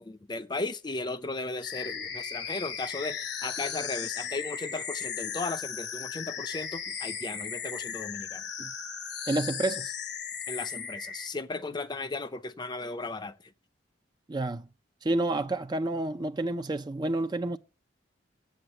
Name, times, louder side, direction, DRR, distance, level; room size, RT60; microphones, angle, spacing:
voice 1, 0.0-8.4 10.5-13.3, left 3 dB, 25° left, 0.6 m, -36 dB
sound 1, 1.6-11.3, left 7 dB, 65° left, 1.1 m, -36 dB
voice 2, 9.3-9.9 14.3-14.6 15.0-17.6, right 2 dB, 25° right, 0.4 m, -29 dB
7.9 x 7.8 x 7.8 m
head